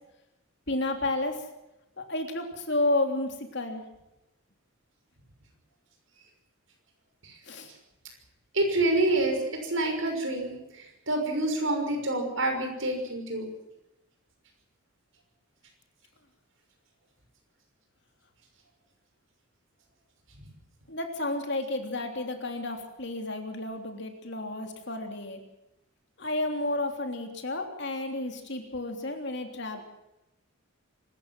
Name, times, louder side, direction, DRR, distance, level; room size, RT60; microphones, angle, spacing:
voice 1, 0.7-1.4 2.0-3.8 7.4-7.7 20.9-25.4 26.2-29.8, left 2 dB, 55° left, 4 dB, 3.3 m, -31 dB
voice 2, 8.5-13.4, right 2 dB, 60° right, 4 dB, 6.1 m, -27 dB
24.5 x 14.0 x 7.7 m, 0.92 s
head